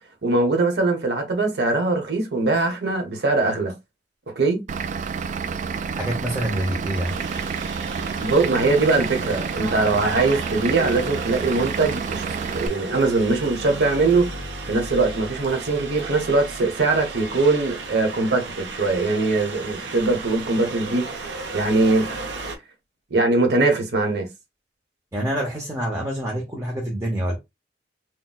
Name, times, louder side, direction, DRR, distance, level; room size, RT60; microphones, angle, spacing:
voice 1, 0.2-3.7 4.4-4.6 8.2-12.2 12.5-14.3 14.7-22.1 23.1-24.3, right 3 dB, 65° right, 0.9 m, -21 dB
Vehicle / Engine, 4.7-12.7, right 5 dB, 45° right, 0.3 m, -29 dB
voice 2, 5.9-7.1 25.1-27.4, equal, 15° right, 0.7 m, -26 dB
sound 1, 7.0-22.6, right 3 dB, 90° right, 0.6 m, -34 dB
3.8 x 2.2 x 2.3 m
head